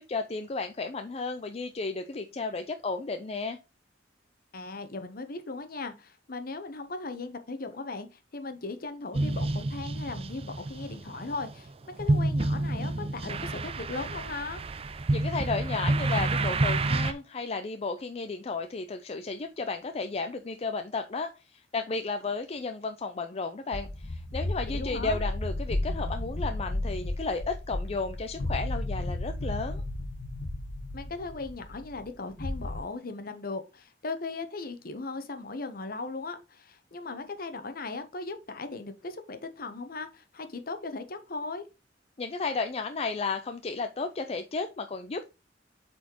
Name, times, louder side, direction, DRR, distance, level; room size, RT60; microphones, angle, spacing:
voice 1, 0.1-3.6 15.1-29.8 42.2-45.3, left 4 dB, 35° left, 0.5 m, -33 dB
voice 2, 4.5-14.6 24.7-25.2 30.9-41.6, left 3 dB, 55° left, 0.9 m, -38 dB
sound 1, 9.1-17.1, right 2 dB, 35° right, 0.5 m, -29 dB
sound 2, 23.7-32.8, left 1 dB, 85° left, 1.0 m, -33 dB
8.1 x 4.2 x 3.0 m
head